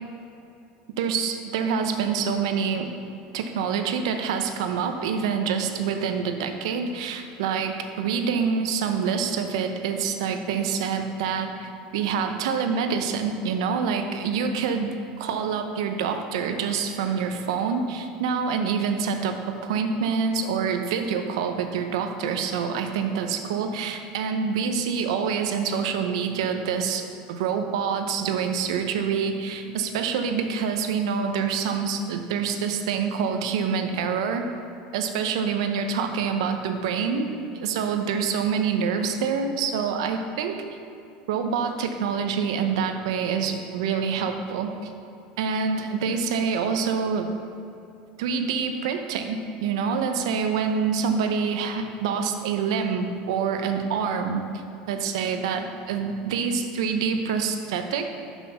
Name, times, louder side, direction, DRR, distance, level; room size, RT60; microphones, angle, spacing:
voice 1, 1.0-2.9 3.3-34.5 34.9-40.6 41.3-44.9 45.4-47.3 48.2-54.4 54.9-58.1, right 6 dB, 80° right, 6 dB, 0.7 m, -26 dB
6.1 x 5.6 x 5.7 m, 2.7 s
supercardioid pair, 115°, 3 cm